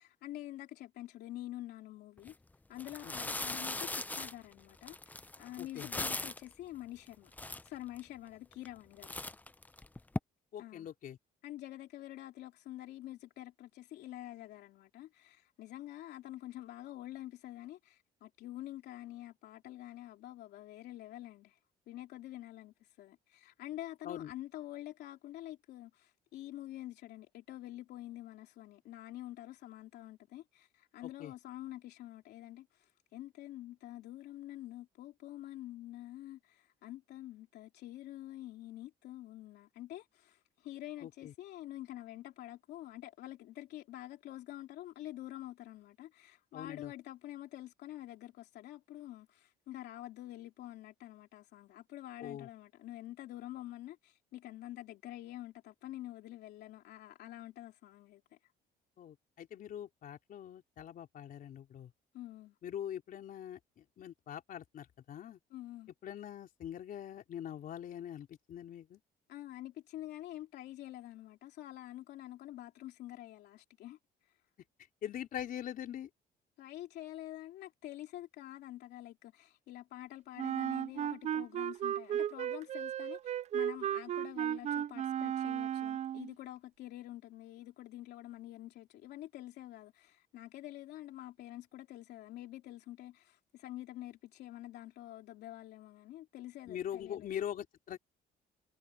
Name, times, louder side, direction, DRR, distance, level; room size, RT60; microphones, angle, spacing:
voice 1, 0.0-2.3 2.7-7.3 7.6-9.1 10.6-10.9 11.4-21.6 21.9-58.2 62.1-62.5 65.5-65.9 69.3-74.0 76.6-97.3, left 14 dB, 75° left, 3.0 m, -47 dB
sound 1, 2.2-2.3 2.8-6.5 7.1-7.2 7.3-8.0 8.5-8.8 9.0-10.2, left 2 dB, 10° left, 0.7 m, -39 dB
voice 2, 5.6-5.9 10.5-11.2 24.0-24.3 31.2-31.3 41.0-41.3 46.5-46.9 52.2-52.5 59.0-61.9 62.6-65.4 66.0-69.0 75.0-76.1 96.7-98.0, left 10 dB, 55° left, 3.9 m, -43 dB
Wind instrument woodwind instrument, 80.4-86.3, right 10 dB, 40° right, 0.4 m, -35 dB
cardioid pair, 110°, 17 cm